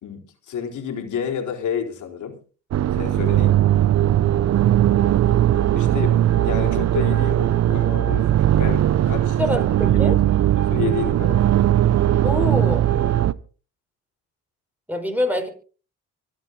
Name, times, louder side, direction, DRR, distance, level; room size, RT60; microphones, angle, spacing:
voice 1, 0.0-2.4 2.9-3.5 5.8-6.2 6.4-9.4 9.9-10.3 10.6-11.6, left 8 dB, 75° left, 4.1 m, -30 dB
sound 1, 2.7-13.3, right 12 dB, 60° right, 0.8 m, -19 dB
voice 2, 9.4-10.2 12.2-12.9 14.9-15.5, left 1 dB, 5° right, 5.1 m, -25 dB
25.0 x 8.7 x 3.9 m
cardioid pair, 90°, 30 cm